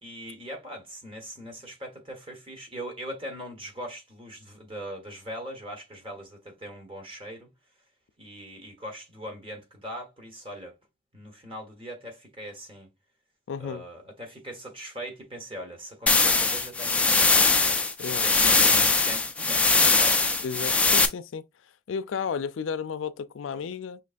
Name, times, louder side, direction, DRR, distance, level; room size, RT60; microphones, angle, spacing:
voice 1, 0.0-7.5 8.2-10.8 11.1-12.9 13.6-17.8 18.1-20.3, equal, 25° right, 1.2 m, -40 dB
voice 2, 13.5-13.8 18.0-18.3 20.4-21.4 21.9-24.0, left 6 dB, 80° left, 0.4 m, -33 dB
sound 1, 16.1-21.1, left 3 dB, 5° left, 0.3 m, -21 dB
5.6 x 3.2 x 2.5 m
head